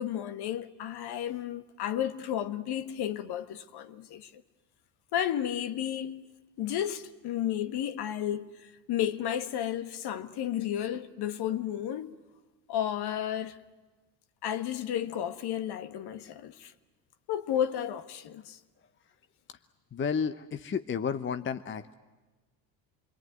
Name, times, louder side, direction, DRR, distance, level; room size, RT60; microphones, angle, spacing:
voice 1, 0.0-4.4 5.1-12.1 12.7-13.6 14.4-16.7 17.3-18.6, left 10 dB, 50° left, 1.5 m, -32 dB
voice 2, 19.9-21.9, left 6 dB, 25° left, 0.9 m, -32 dB
28.0 x 22.0 x 9.3 m
hypercardioid pair, 75°, 50 cm